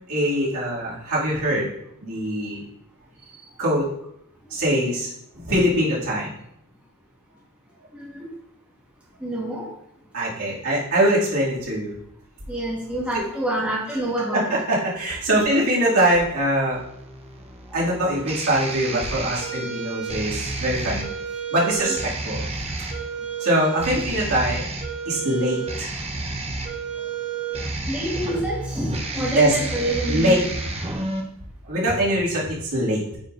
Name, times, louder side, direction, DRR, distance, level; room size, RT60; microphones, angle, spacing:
voice 1, 0.0-1.7 2.0-2.6 3.6-3.9 4.5-5.1 5.3-6.3 10.1-11.9 14.3-16.8 17.7-21.1 21.5-22.4 23.4-24.6 25.1-25.9 29.2-29.5 30.1-30.3 31.6-33.2, right 1 dB, 70° right, -7 dB, 2.5 m, -22 dB
voice 2, 7.9-8.3 9.2-9.7 12.5-14.5 15.3-15.4 27.9-30.4, right 1 dB, 5° right, -5 dB, 1.5 m, -27 dB
sound 1, 16.7-31.2, right 3 dB, 30° right, 0.9 m, -31 dB
9.1 x 5.0 x 2.6 m, 0.75 s
head